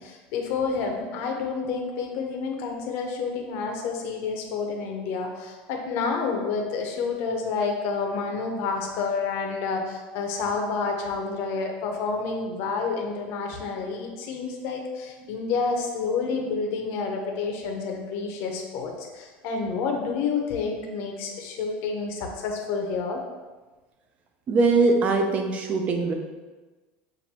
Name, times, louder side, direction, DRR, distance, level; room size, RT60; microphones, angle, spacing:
voice 1, 0.0-23.2, left 4 dB, 55° left, 2 dB, 0.7 m, -29 dB
voice 2, 24.5-26.1, right 3 dB, 25° right, 4 dB, 0.5 m, -21 dB
6.0 x 2.5 x 2.8 m, 1.3 s
cardioid pair, 155°, 5 cm